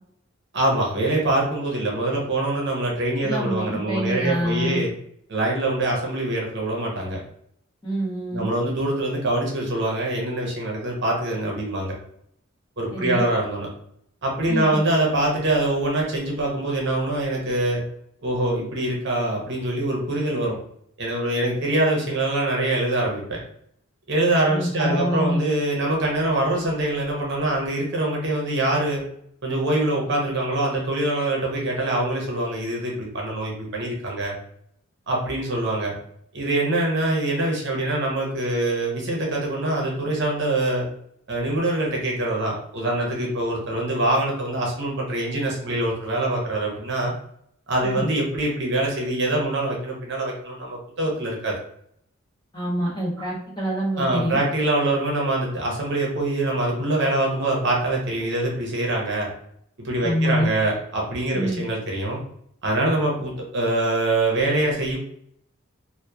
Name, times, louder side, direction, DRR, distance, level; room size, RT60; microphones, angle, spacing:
voice 1, 0.5-4.9 5.3-7.2 8.3-11.9 12.8-13.7 14.2-17.8 18.2-20.6 21.0-23.4 24.1-29.0 29.4-34.4 35.1-35.9 36.3-40.9 41.3-47.1 47.7-51.5 54.0-59.3 59.8-62.2 62.6-65.0, right 1 dB, 55° right, -2 dB, 0.7 m, -24 dB
voice 2, 3.2-4.8 7.8-8.5 12.9-13.2 14.5-14.8 24.5-25.4 47.8-48.0 52.5-54.4 60.0-60.5 61.3-61.6, equal, 20° left, -6 dB, 0.8 m, -26 dB
2.9 x 2.1 x 2.3 m, 0.68 s
head